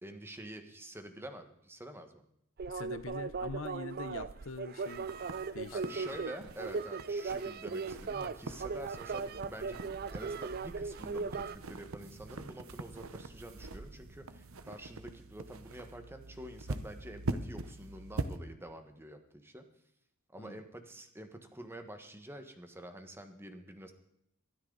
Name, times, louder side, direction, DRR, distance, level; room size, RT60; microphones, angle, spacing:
voice 1, 0.0-2.2 5.7-19.6 20.3-23.9, right 1 dB, 10° right, 6 dB, 1.5 m, -48 dB
sound 1, 2.6-11.6, right 4 dB, 45° right, 0.5 m, -38 dB
voice 2, 2.7-5.1 5.5-6.0 20.4-20.6, left 4 dB, 70° left, 13 dB, 0.9 m, -44 dB
sound 2, 4.8-18.4, right 2 dB, 85° right, 1.0 m, -44 dB
23.0 x 13.0 x 4.0 m, 0.76 s
head